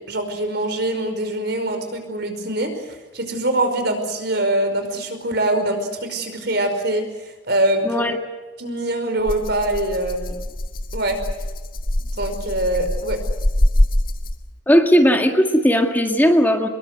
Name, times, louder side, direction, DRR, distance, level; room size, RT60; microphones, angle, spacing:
voice 1, 0.1-2.7 3.1-7.0 7.5-8.0 8.6-10.4 10.9-11.2 12.2-13.2, right 1 dB, 60° right, 7 dB, 5.2 m, -23 dB
voice 2, 7.9-8.2 14.7-16.7, equal, 10° left, 4 dB, 1.9 m, -16 dB
Rattle (instrument), 9.3-14.6, left 1 dB, 50° left, 1.8 m, -23 dB
25.5 x 22.0 x 8.0 m, 1.3 s
head